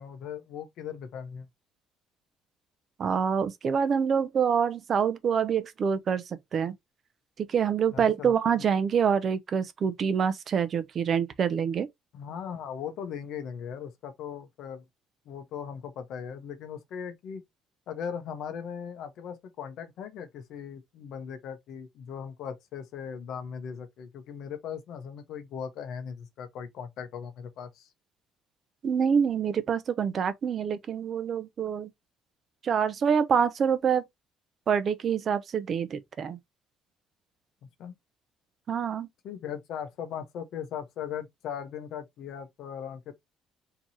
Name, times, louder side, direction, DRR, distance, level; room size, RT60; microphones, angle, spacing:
voice 1, 0.0-1.5 7.9-8.4 12.1-14.8 15.3-17.4 17.9-27.9 37.8-37.9 39.2-43.1, left 7 dB, 60° left, 0.9 m, -38 dB
voice 2, 3.0-6.7 7.4-11.9 28.8-31.9 32.6-34.0 34.7-36.4 38.7-39.1, right 7 dB, 35° right, 0.6 m, -26 dB
4.6 x 2.9 x 2.8 m
cardioid pair, 170°, 0 cm